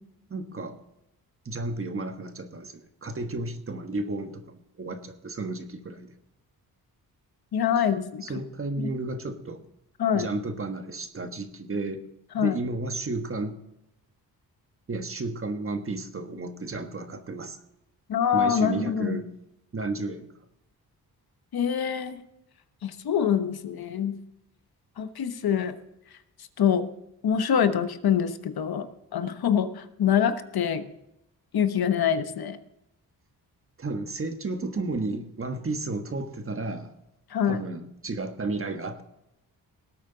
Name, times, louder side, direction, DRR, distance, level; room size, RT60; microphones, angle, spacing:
voice 1, 0.3-0.8 1.4-6.1 7.8-7.9 8.2-9.6 10.1-12.0 12.4-13.6 14.9-17.6 18.3-19.3 19.7-20.3 33.8-36.9 37.5-39.0, right 2 dB, 35° right, 7 dB, 1.4 m, -33 dB
voice 2, 7.5-8.2 8.8-8.9 10.0-10.3 12.3-12.6 18.1-19.2 21.5-22.2 22.8-24.2 25.0-25.7 26.6-26.9 27.2-28.9 29.1-30.9 31.5-32.6 37.3-37.6, left 8 dB, 75° left, 9 dB, 1.1 m, -25 dB
19.0 x 8.5 x 3.9 m, 0.86 s
wide cardioid pair, 110°, 37 cm